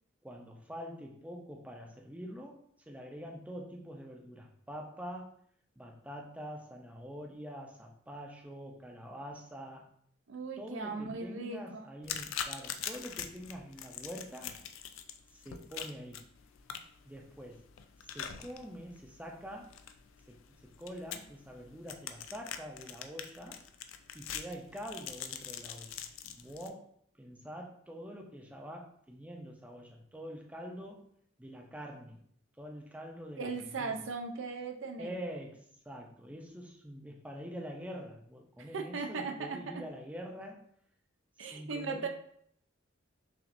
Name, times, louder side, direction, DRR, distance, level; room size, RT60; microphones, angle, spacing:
voice 1, 0.2-5.3 5.8-9.9 10.6-14.6 15.3-16.2 17.1-17.6 18.0-19.7 20.3-23.6 24.1-26.9 27.2-31.0 31.4-32.2 32.6-34.0 35.0-40.6 41.4-42.1, equal, 5° right, 0 dB, 0.5 m, -45 dB
voice 2, 10.3-11.9 33.4-35.1 38.6-39.8 41.4-42.1, right 4 dB, 80° right, 5 dB, 0.5 m, -38 dB
sound 1, 12.0-26.7, left 8 dB, 85° left, 0.4 m, -44 dB
5.8 x 2.5 x 2.5 m, 0.65 s
head